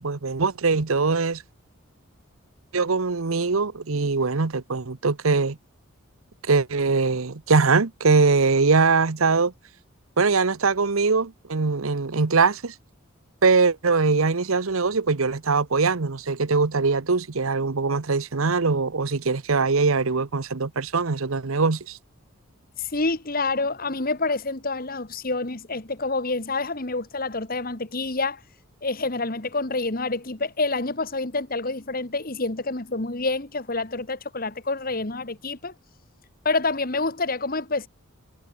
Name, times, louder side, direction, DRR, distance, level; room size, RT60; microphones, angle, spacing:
voice 1, 0.0-1.4 2.7-5.6 6.5-9.5 10.2-12.7 13.4-22.0, right 4 dB, 75° right, 1.0 m, -22 dB
voice 2, 22.8-28.4 28.8-35.7 36.5-37.9, left 3 dB, 45° left, 1.7 m, -27 dB
head